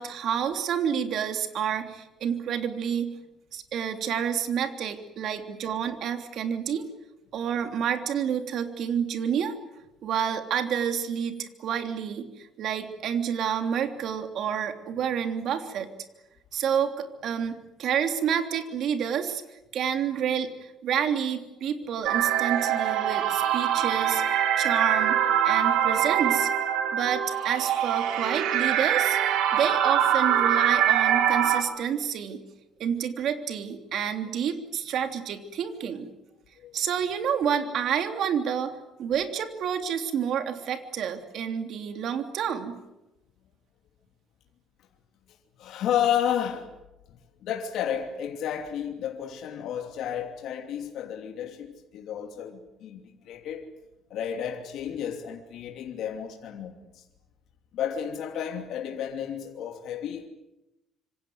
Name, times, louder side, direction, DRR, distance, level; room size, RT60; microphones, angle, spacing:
voice 1, 0.0-3.1 3.5-6.9 7.3-9.6 10.0-15.9 16.5-19.4 19.7-24.2 24.6-26.5 26.9-29.2 29.5-32.4 32.8-36.1 36.7-42.8, right 8 dB, 55° right, 3.2 m, -29 dB
sound 1, 22.0-31.6, right 10 dB, 85° right, 3.7 m, -24 dB
voice 2, 45.6-46.7 47.4-53.7 54.1-57.0 57.7-60.3, left 9 dB, 65° left, 2.9 m, -32 dB
26.5 x 25.5 x 8.0 m
cardioid pair, 140°, 0 cm